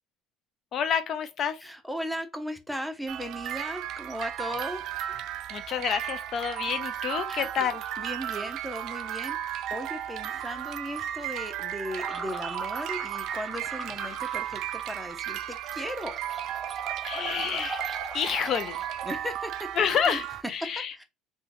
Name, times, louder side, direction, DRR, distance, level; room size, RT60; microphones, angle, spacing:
voice 1, 0.7-1.6 5.5-7.8 17.0-17.8 18.1-18.8 19.8-20.9, left 7 dB, 45° left, 0.3 m, -28 dB
voice 2, 1.6-5.0 7.3-7.7 8.0-9.4 9.7-16.2 19.0-19.7 20.0-20.2 20.6-21.0, equal, ahead, 0.6 m, -37 dB
sound 1, 3.1-20.4, right 11 dB, 60° right, 0.4 m, -35 dB
sound 2, 11.9-19.2, right 2 dB, 20° right, 0.9 m, -40 dB
3.6 x 2.1 x 2.9 m
supercardioid pair, 115°, 0 cm